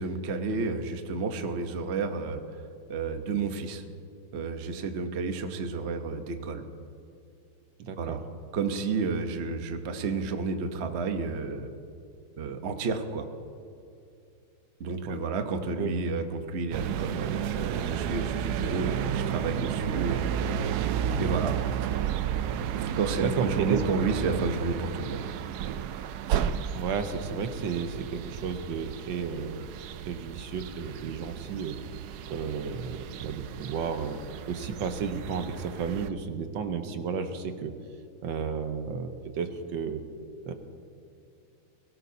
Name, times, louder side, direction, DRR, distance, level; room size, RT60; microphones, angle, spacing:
voice 1, 0.0-2.4 2.9-3.8 4.3-6.6 8.0-8.2 8.5-11.7 12.4-13.2 14.8-20.3 21.2-21.5 22.8-25.2, right 4 dB, 50° right, 6 dB, 0.8 m, -31 dB
voice 2, 7.8-8.2 15.0-15.2 15.8-15.9 22.9-23.8 26.7-29.6 30.0-31.8 32.3-34.2 34.4-37.7 38.2-40.0 40.5-40.6, right 6 dB, 70° right, 7 dB, 1.6 m, -33 dB
sound 1, 16.7-36.1, right 9 dB, 90° right, 0.8 m, -32 dB
21.5 x 17.5 x 2.8 m, 2.5 s
omnidirectional pair, 2.3 m